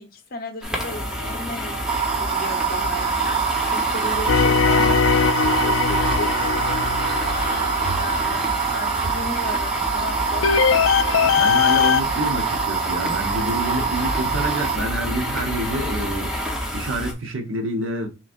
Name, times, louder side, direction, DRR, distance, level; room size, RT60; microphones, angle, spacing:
voice 1, 0.0-1.8 2.0-6.6 7.2-10.5, left 2 dB, 50° left, 1.0 m, -35 dB
sound 1, 0.6-17.1, equal, 5° right, 0.9 m, -28 dB
sound 2, 1.9-14.8, right 7 dB, 25° right, 0.3 m, -25 dB
sound 3, 4.3-8.4 10.4-12.0, left 7 dB, 90° left, 0.4 m, -20 dB
voice 2, 11.2-16.3 16.7-18.1, right 1 dB, 85° right, 1.1 m, -27 dB
6.1 x 3.2 x 2.6 m
head